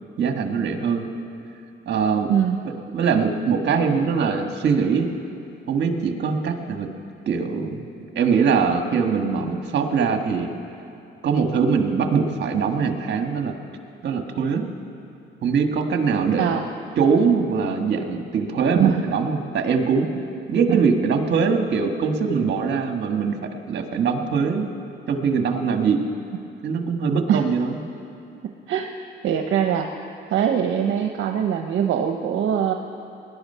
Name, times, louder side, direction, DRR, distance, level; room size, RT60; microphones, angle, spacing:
voice 1, 0.2-1.1 1.8-2.3 2.6-5.1 5.7-6.9 7.2-7.8 8.1-10.5 11.2-13.5 14.0-14.6 15.4-16.6 17.0-20.1 20.5-24.7 25.1-26.0 26.6-27.8, right 5 dB, 60° right, 5 dB, 1.6 m, -22 dB
voice 2, 29.2-29.9 30.3-32.7, right 9 dB, 75° right, 4 dB, 0.8 m, -22 dB
20.5 x 11.5 x 5.6 m, 2.6 s
cardioid pair, 90°, 20 cm